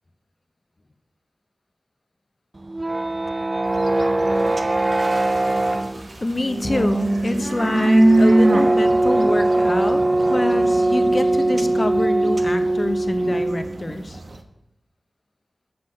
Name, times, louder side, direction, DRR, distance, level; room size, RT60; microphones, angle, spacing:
sound 1, 2.6-13.8, right 2 dB, 35° right, 0.4 m, -21 dB
sound 2, 3.7-5.7 6.2-14.4, right 1 dB, 60° right, 1.0 m, -23 dB
sound 3, 4.3-12.5, right 1 dB, 75° right, 2.4 m, -47 dB
voice 1, 6.2-10.0 10.3-14.2, left 2 dB, 35° left, 9 dB, 0.9 m, -26 dB
7.7 x 6.0 x 7.5 m, 0.85 s
wide cardioid pair, 75°, 0 cm